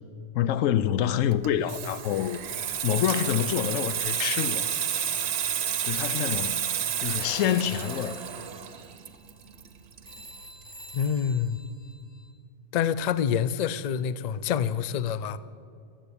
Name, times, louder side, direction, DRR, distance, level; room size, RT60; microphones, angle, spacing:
voice 1, 0.3-2.4 2.8-4.7 5.8-6.8 7.0-8.2, left 10 dB, 85° left, 0.9 m, -27 dB
Water tap faucet / Sink (filling or washing), 1.3-10.6 10.9-11.2, right 9 dB, 60° right, 0.9 m, -31 dB
Telephone, 4.0-6.8 7.1-12.3, right 1 dB, 20° right, 1.0 m, -48 dB
voice 2, 10.9-11.6 12.7-15.4, left 8 dB, 65° left, 0.4 m, -27 dB
17.5 x 7.7 x 8.5 m
omnidirectional pair, 1.3 m